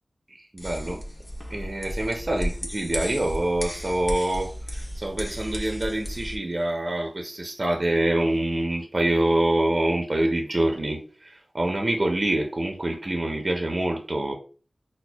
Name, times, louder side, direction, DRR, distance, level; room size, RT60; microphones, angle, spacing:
voice 1, 0.3-1.0 1.5-14.4, right 1 dB, 40° right, 2 dB, 0.5 m, -26 dB
sound 1, 0.6-6.4, equal, 30° left, 0.8 m, -34 dB
5.9 x 2.1 x 2.2 m, 0.39 s
wide cardioid pair, 70°, 0 cm